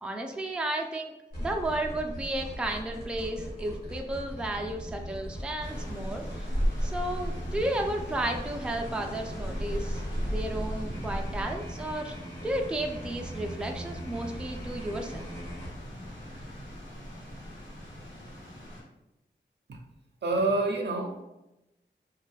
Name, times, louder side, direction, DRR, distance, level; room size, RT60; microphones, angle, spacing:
voice 1, 0.0-1.1 1.4-6.5 6.8-12.1 12.4-15.3, right 1 dB, 5° right, 2 dB, 0.3 m, -33 dB
sound 1, 1.3-15.7, equal, 55° left, 1.3 m, -40 dB
sound 2, 5.6-18.8, equal, 80° left, 1.1 m, -37 dB
voice 2, 20.2-21.2, right 2 dB, 65° right, 3 dB, 0.5 m, -27 dB
2.5 x 2.2 x 3.3 m, 0.91 s
cardioid pair, 50°, 19 cm